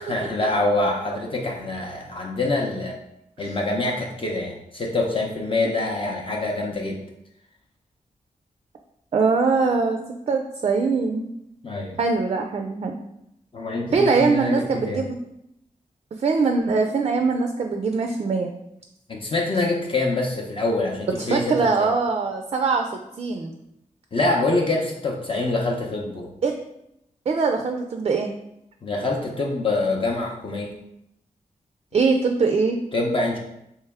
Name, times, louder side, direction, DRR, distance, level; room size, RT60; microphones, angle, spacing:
voice 1, 0.0-3.0 3.4-7.0 11.6-12.0 13.5-15.0 19.1-21.9 24.1-26.3 28.8-30.7 32.9-33.4, left 2 dB, 40° left, -1 dB, 0.6 m, -25 dB
voice 2, 9.1-10.0 10.3-11.3 12.0-13.0 13.9-15.1 16.2-18.5 21.2-22.9 23.2-23.5 26.4-26.5 27.3-28.3 31.9-32.8, right 4 dB, 45° right, 4 dB, 0.4 m, -22 dB
3.3 x 2.9 x 3.4 m, 0.81 s
wide cardioid pair, 85°, 14 cm